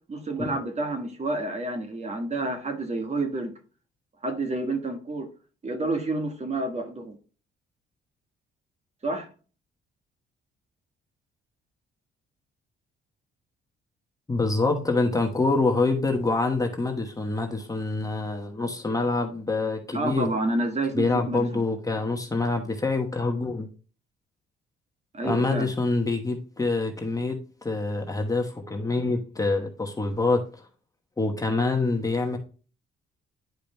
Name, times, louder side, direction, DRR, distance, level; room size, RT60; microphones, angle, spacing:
voice 1, 0.1-3.5 4.2-5.3 5.6-7.2 9.0-9.3 19.9-21.6 25.1-25.7, right 2 dB, 35° right, 1.6 m, -29 dB
voice 2, 14.3-20.3 20.9-23.7 25.2-30.7 31.2-32.4, left 3 dB, 15° left, 1.1 m, -26 dB
10.5 x 4.9 x 2.2 m
cardioid pair, 90°, 20 cm